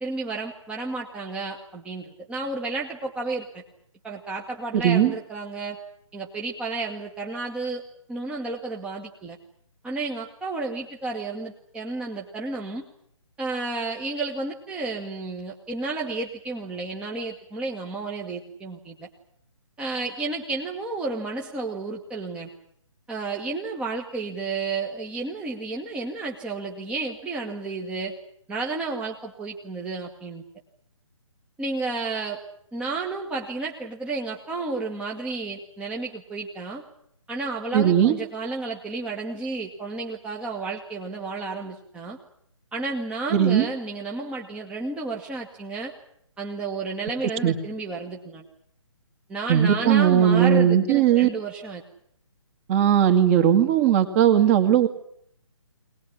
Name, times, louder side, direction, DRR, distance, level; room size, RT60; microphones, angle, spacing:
voice 1, 0.0-3.6 4.0-5.8 6.1-7.8 8.1-9.4 9.8-12.9 13.4-19.1 19.8-22.5 23.1-28.1 28.5-30.4 31.6-32.4 32.7-36.8 37.3-42.2 42.7-45.9 46.4-48.4 49.3-51.8, right 3 dB, 5° right, -1 dB, 1.4 m, -32 dB
voice 2, 4.7-5.1 37.7-38.2 43.3-43.7 47.4-47.5 49.5-51.3 52.7-54.9, right 9 dB, 25° right, 7 dB, 2.2 m, -18 dB
22.0 x 19.5 x 9.9 m, 0.69 s
figure-of-eight pair, 140°, 17 cm